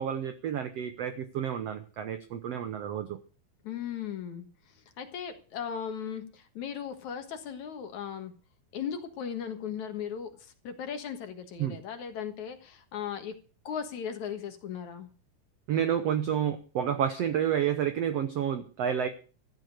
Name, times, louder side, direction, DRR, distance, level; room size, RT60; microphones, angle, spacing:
voice 1, 0.0-3.2 11.6-11.8 15.7-19.1, right 9 dB, 85° right, 10 dB, 1.4 m, -30 dB
voice 2, 3.6-8.3 8.7-13.3 13.6-15.1, left 8 dB, 60° left, 8 dB, 2.6 m, -37 dB
15.5 x 11.0 x 6.6 m, 0.39 s
omnidirectional pair, 4.4 m